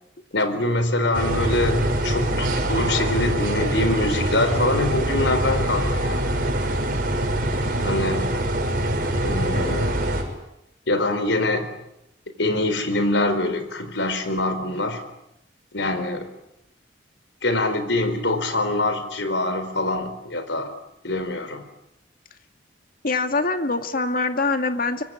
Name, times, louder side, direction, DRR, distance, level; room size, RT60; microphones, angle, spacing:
voice 1, 0.3-6.2 7.8-8.4 9.2-10.0 10.9-11.7 12.4-15.0 15.7-16.3 17.4-20.7 21.0-21.6, left 2 dB, 85° left, 10 dB, 4.2 m, -24 dB
sound 1, 1.1-10.2, right 1 dB, 50° right, 6.0 m, -24 dB
voice 2, 23.0-25.0, left 3 dB, 50° left, 7 dB, 2.2 m, -23 dB
24.5 x 24.0 x 9.8 m, 0.85 s
head